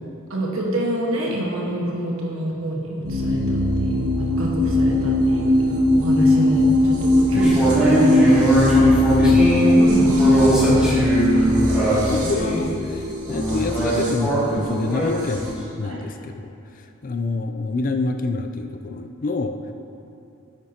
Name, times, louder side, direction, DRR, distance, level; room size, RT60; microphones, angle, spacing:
voice 1, 0.3-5.5 5.9-7.5 7.8-9.0 9.8-11.6 15.8-16.1, right 1 dB, 70° right, -2 dB, 1.5 m, -27 dB
sound 1, 3.0-15.5, left 1 dB, 90° right, 2.2 m, -20 dB
sound 2, 7.4-12.6 13.3-15.6, right 1 dB, 5° right, 2.2 m, -20 dB
voice 2, 9.2-9.7 11.9-16.5 17.0-19.6, left 3 dB, 35° left, 6 dB, 0.4 m, -27 dB
9.5 x 9.2 x 2.9 m, 2.6 s
head